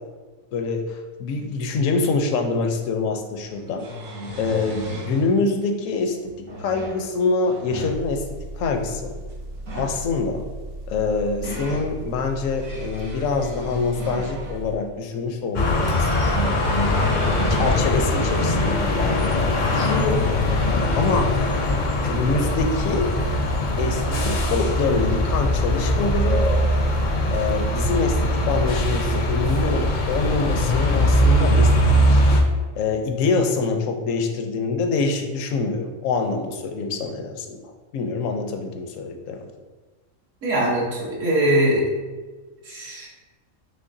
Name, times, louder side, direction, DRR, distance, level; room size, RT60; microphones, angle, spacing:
voice 1, 0.5-3.9 4.4-6.3 6.6-8.3 8.6-9.1 9.7-10.4 10.9-16.1 16.5-21.3 22.0-23.2 23.8-26.4 27.3-32.2 32.8-39.5, left 4 dB, 80° left, 4 dB, 1.0 m, -25 dB
sound 1, 2.6-2.7 3.6-5.2 6.3-7.0 7.5-7.9 9.5-10.0 10.9-11.9 12.4-14.6 15.8-17.9 18.5-18.6 20.1-20.2, left 1 dB, 90° right, 1.5 m, -31 dB
Engine, 7.9-14.8, right 1 dB, 45° right, 0.9 m, -36 dB
sound 2, 15.5-32.4, left 1 dB, 50° left, 0.5 m, -21 dB
voice 2, 40.4-41.9 42.6-43.1, right 1 dB, 70° right, -5 dB, 1.4 m, -21 dB
5.8 x 3.1 x 2.6 m, 1.3 s
omnidirectional pair, 1.4 m